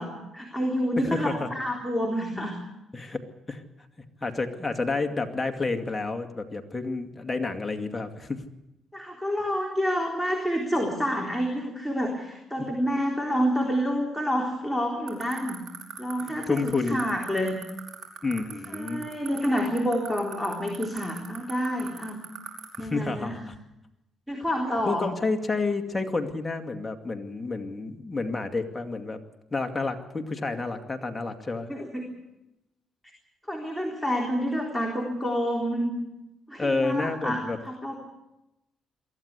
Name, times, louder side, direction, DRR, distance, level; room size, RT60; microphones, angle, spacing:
voice 1, 0.0-2.5 8.9-15.6 16.0-17.6 18.7-22.2 22.8-23.3 24.3-25.1 31.7-32.0 33.5-36.0 36.5-38.0, equal, ahead, -1 dB, 3.9 m, -28 dB
voice 2, 1.0-1.5 2.9-3.6 4.2-8.4 12.6-12.7 16.2-17.0 18.2-19.1 22.8-23.5 24.9-29.2 29.5-31.7 36.6-37.6, left 3 dB, 20° left, 5 dB, 2.3 m, -30 dB
sound 1, 15.1-22.8, right 8 dB, 65° right, 5.4 m, -37 dB
23.0 x 14.5 x 8.3 m, 0.94 s
cardioid pair, 90°, 0 cm